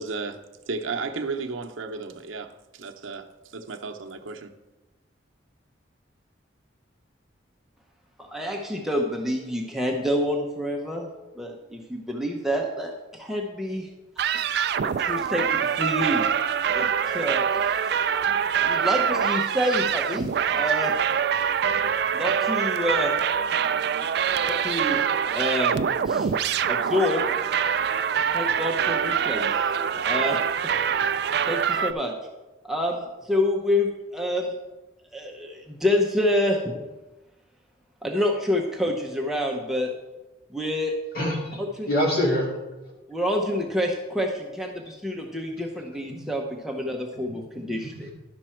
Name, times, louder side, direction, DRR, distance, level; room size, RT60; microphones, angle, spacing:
voice 1, 0.0-4.5, right 4 dB, 90° right, 0.8 m, -34 dB
voice 2, 8.2-11.1 11.4-13.9 14.8-16.3 16.7-17.8 18.6-20.9 22.1-23.1 24.4-25.0 25.3-25.8 26.1-26.3 26.7-27.2 28.3-29.7 29.9-30.4 31.5-32.1 32.6-34.5 35.1-36.8 38.0-39.9 40.5-40.9 41.8-41.9 43.1-48.1, left 1 dB, ahead, 0.7 m, -27 dB
sound 1, 14.2-31.9, right 7 dB, 55° right, 0.3 m, -24 dB
voice 3, 41.1-41.6 41.9-42.5 46.1-46.2 47.2-47.4 47.7-48.1, equal, 50° left, 2.4 m, -26 dB
11.0 x 6.1 x 4.4 m
head